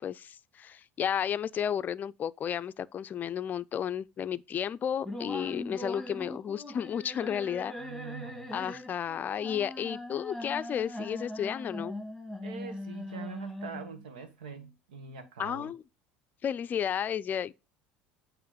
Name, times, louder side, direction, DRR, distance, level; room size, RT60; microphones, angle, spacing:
voice 1, 0.0-7.7 8.5-11.9 15.4-15.8 16.4-17.5, left 8 dB, 40° left, 0.4 m, -32 dB
sound 1, 5.0-14.0, left 1 dB, ahead, 1.9 m, -41 dB
voice 2, 7.7-8.8 12.4-15.7, right 6 dB, 90° right, 1.2 m, -44 dB
8.8 x 3.1 x 5.2 m
hypercardioid pair, 85°, 5 cm